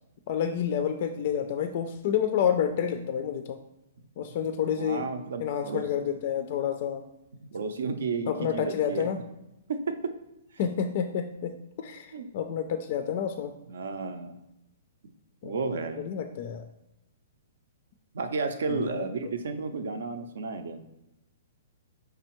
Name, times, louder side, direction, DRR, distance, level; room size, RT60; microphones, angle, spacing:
voice 1, 0.3-3.6 4.2-5.1 5.4-7.1 8.3-9.2 10.6-13.5 15.4-15.5 16.1-16.6 18.7-19.1, left 8 dB, 50° left, 8 dB, 0.3 m, -29 dB
voice 2, 4.8-5.9 7.4-9.1 9.7-10.0 12.1-12.3 13.7-14.3 15.4-16.0 18.1-20.8, right 4 dB, 75° right, 8 dB, 0.5 m, -32 dB
4.8 x 3.3 x 3.0 m, 0.90 s
hypercardioid pair, 140°, 0 cm